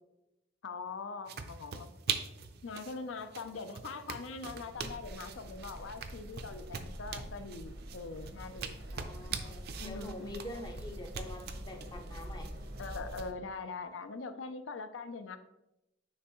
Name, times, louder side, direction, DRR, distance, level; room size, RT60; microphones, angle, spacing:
voice 1, 0.6-1.9 2.6-8.8 9.4-10.6 12.8-15.4, left 4 dB, 80° left, 10 dB, 0.5 m, -42 dB
sound 1, 1.3-13.3, right 6 dB, 55° right, 0.5 m, -43 dB
sound 2, 4.7-13.3, equal, 85° right, 1.1 m, -46 dB
voice 2, 8.9-12.5, left 1 dB, 20° left, 4 dB, 0.5 m, -45 dB
9.6 x 3.4 x 3.0 m, 0.91 s
head